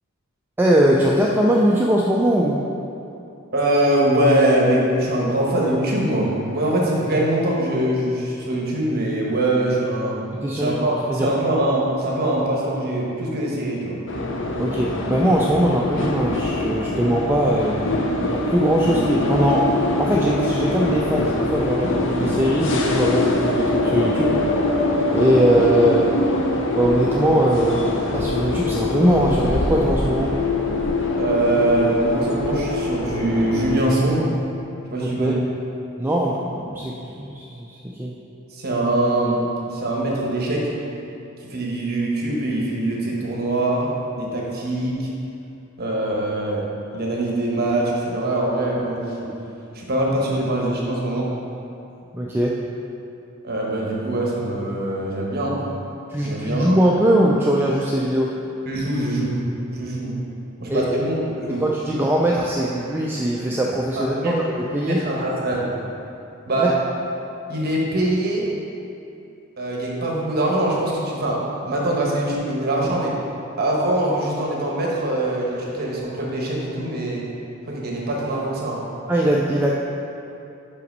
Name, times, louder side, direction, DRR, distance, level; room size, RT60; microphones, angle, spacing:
voice 1, 0.6-2.6 10.4-10.8 11.1-11.3 14.6-17.8 18.3-19.6 20.0-24.3 25.1-26.1 26.7-30.3 35.0-35.4 36.0-38.1 52.1-52.5 56.1-58.3 60.7-60.9 61.6-65.0 66.6-66.7 79.1-79.7, right 1 dB, 10° right, -3 dB, 0.3 m, -20 dB
voice 2, 3.5-10.2 10.5-14.0 31.1-34.3 34.9-35.3 38.5-40.6 41.4-45.1 45.8-46.6 46.9-49.3 49.7-51.3 53.4-55.6 56.2-56.8 58.7-59.4 59.7-60.2 60.6-61.6 64.1-64.4 64.8-65.7 66.5-66.7 67.5-68.5 69.6-73.1 73.6-77.2 77.7-78.8, right 1 dB, 45° right, -3 dB, 1.1 m, -23 dB
sound 1, 14.1-33.8, left 2 dB, 60° left, 0.7 m, -23 dB
5.6 x 5.1 x 5.3 m, 2.8 s
head